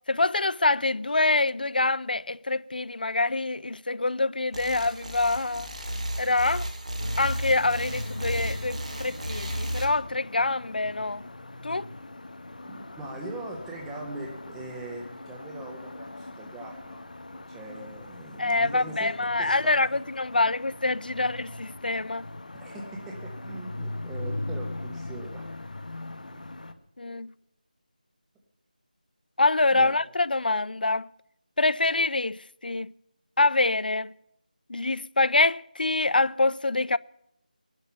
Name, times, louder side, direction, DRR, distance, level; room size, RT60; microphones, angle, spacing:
voice 1, 0.1-5.7 6.2-6.7 7.2-11.2 11.6-11.9 18.4-22.3 27.0-27.3 29.4-31.1 31.6-32.9 33.4-34.1 34.7-37.0, left 2 dB, 90° left, 0.5 m, -25 dB
sound 1, 4.5-9.9, equal, 50° right, 2.2 m, -33 dB
sound 2, 7.0-26.7, left 2 dB, 60° left, 1.2 m, -40 dB
voice 2, 12.6-17.0 17.3-19.1 19.4-19.8 22.5-25.5 26.3-26.4 27.1-27.2 29.7-29.9, right 2 dB, ahead, 0.5 m, -41 dB
19.5 x 11.5 x 5.6 m
figure-of-eight pair, 180°, 5 cm